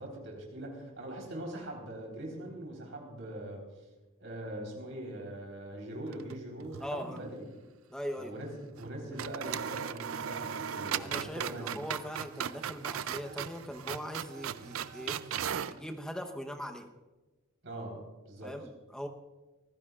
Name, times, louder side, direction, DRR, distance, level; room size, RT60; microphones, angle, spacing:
voice 1, 0.0-3.6 4.2-7.5 8.2-11.8 17.6-18.5, right 1 dB, 65° right, 0 dB, 4.1 m, -42 dB
sound 1, 6.1-6.9 7.2-7.3 8.7-8.9 9.2-15.8, right 8 dB, 85° right, 0.5 m, -37 dB
voice 2, 6.8-7.2 7.9-8.3 11.0-16.9 18.4-19.1, equal, 5° left, 3 dB, 0.9 m, -41 dB
25.0 x 15.5 x 2.5 m, 1.2 s
head